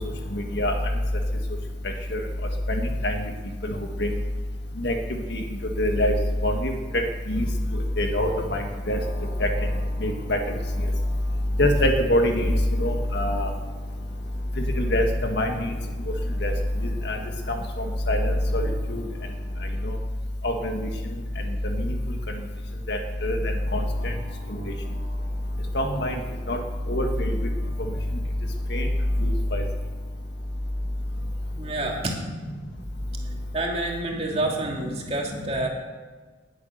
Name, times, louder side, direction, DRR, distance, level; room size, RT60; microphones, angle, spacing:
voice 1, 0.3-0.7 2.1-2.2 2.7-3.2 3.6-4.1 4.8-5.0 5.3-5.4 5.8-6.2 6.4-7.0 7.3-7.5 8.0-9.0 9.4-9.5 10.0-10.4 11.6-13.5 14.8-15.0 15.3-15.7 16.4-16.5 17.0-17.2 18.1-19.0 19.8-19.9 20.4-20.9 21.6-21.9 22.9-24.1 24.6-24.7 25.7-26.2 26.5-26.6 26.9-27.3 28.7-28.9 29.2-29.6, left 1 dB, 55° left, 3 dB, 1.8 m, -24 dB
voice 2, 31.6-32.1 33.5-35.7, right 2 dB, 30° right, -1 dB, 2.7 m, -28 dB
20.0 x 8.4 x 6.7 m, 1.4 s
head